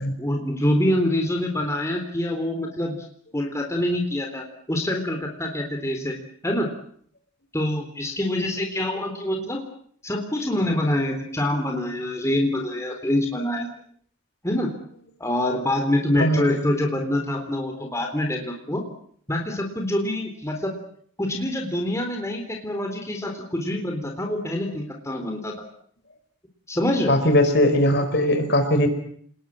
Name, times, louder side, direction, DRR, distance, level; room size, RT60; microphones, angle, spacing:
voice 1, 0.2-3.0 3.3-6.2 6.4-6.7 7.5-9.6 10.0-13.7 14.4-14.7 15.2-18.8 19.3-20.7 21.2-25.6 26.7-27.2, left 1 dB, 15° left, 2 dB, 3.7 m, -25 dB
voice 2, 16.1-16.5 27.1-28.9, left 1 dB, 50° left, 7 dB, 4.9 m, -19 dB
28.5 x 20.5 x 8.8 m, 0.62 s
head